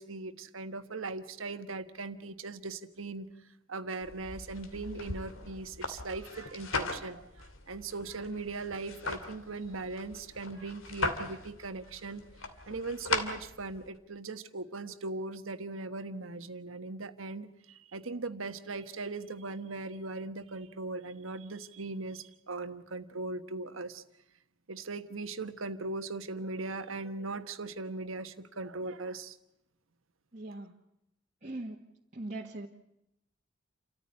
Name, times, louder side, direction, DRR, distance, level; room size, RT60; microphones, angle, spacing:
voice 1, 0.0-3.3 3.7-12.3 12.7-24.0 24.7-29.4, right 3 dB, 85° right, 10 dB, 1.3 m, -39 dB
sound 1, 4.0-14.0, left 3 dB, 90° left, 2.5 m, -39 dB
voice 2, 30.3-30.7 31.4-31.8 32.1-32.7, right 2 dB, 35° right, -2 dB, 1.6 m, -40 dB
29.0 x 14.0 x 9.6 m, 0.83 s
head